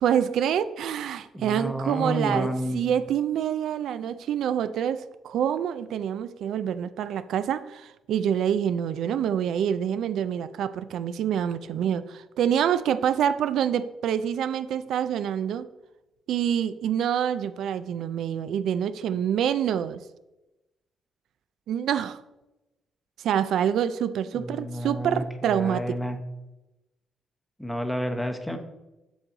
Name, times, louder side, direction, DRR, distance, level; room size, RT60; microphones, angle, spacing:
voice 1, 0.0-15.7 16.3-20.0 21.7-22.2 23.2-26.0, right 9 dB, 75° right, 13 dB, 0.4 m, -26 dB
voice 2, 1.3-2.8 24.3-26.2 27.6-28.6, equal, 5° left, 6 dB, 0.8 m, -30 dB
7.5 x 7.1 x 3.9 m, 0.99 s
cardioid pair, 135°, 0 cm